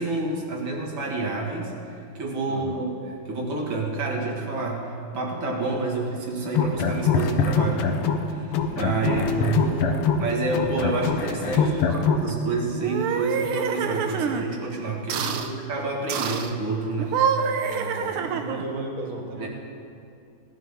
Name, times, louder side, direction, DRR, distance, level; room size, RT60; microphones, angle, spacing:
voice 1, 0.0-9.6 10.2-15.3 15.7-17.2 19.4-19.5, right 3 dB, 60° right, -1 dB, 2.4 m, -29 dB
voice 2, 2.5-2.9 8.9-10.1 11.5-12.1 15.1-15.6 17.7-19.5, right 2 dB, 40° right, 0 dB, 1.9 m, -34 dB
sound 1, 6.5-8.3 8.5-12.3, left 6 dB, 85° left, 1.8 m, -23 dB
sound 2, 12.8-14.5 15.1-15.5 16.1-16.5 17.0-18.7, right 7 dB, 80° right, 1.6 m, -26 dB
17.5 x 11.5 x 3.6 m, 2.6 s
omnidirectional pair, 2.4 m